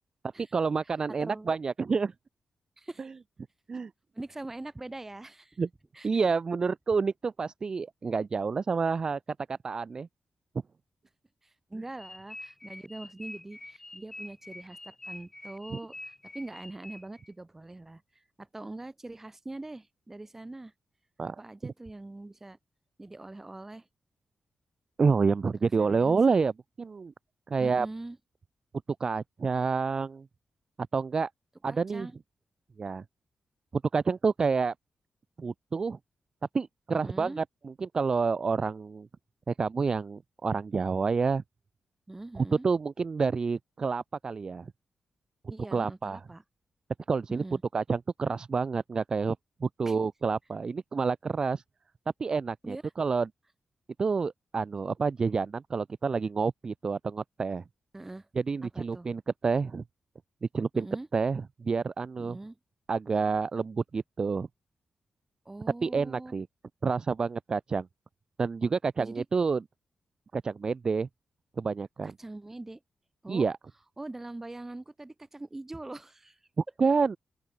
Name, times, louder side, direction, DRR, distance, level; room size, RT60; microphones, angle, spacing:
voice 1, 0.4-2.1 3.7-3.9 5.6-5.7 6.0-9.2 9.5-10.1 21.2-21.4 21.6-21.7 25.0-26.5 26.8-27.1 27.5-27.9 29.0-30.3 30.9-31.3 31.6-32.1 32.8-33.0 33.7-34.7 35.4-36.0 36.5-39.1 39.5-41.4 42.4-44.7 45.7-46.2 47.1-47.4 47.7-49.4 49.6-51.6 52.2-53.3 54.0-57.6 58.4-59.8 60.5-60.9 61.1-62.4 62.9-64.5 65.8-66.5 66.8-67.9 68.4-69.6 70.3-71.1 71.6-72.1 73.3-73.6 76.6-77.2, right 5 dB, 35° right, 0.5 m, -28 dB
voice 2, 1.2-1.5 2.8-3.1 4.1-5.6 5.9-6.1 11.4-20.7 21.4-22.6 23.0-23.9 25.6-26.2 27.6-28.2 31.7-32.2 36.9-37.4 42.1-42.6 45.5-46.4 47.3-47.6 49.8-50.0 52.6-52.9 57.9-58.3 58.6-59.1 60.7-61.1 62.2-62.6 65.4-66.3 69.0-69.2 72.0-72.8 73.2-73.4 74.0-76.4, right 2 dB, 15° right, 1.4 m, -43 dB
sound 1, 12.0-17.3, left 2 dB, 15° left, 4.2 m, -46 dB
open air
wide cardioid pair, 150°, 2 cm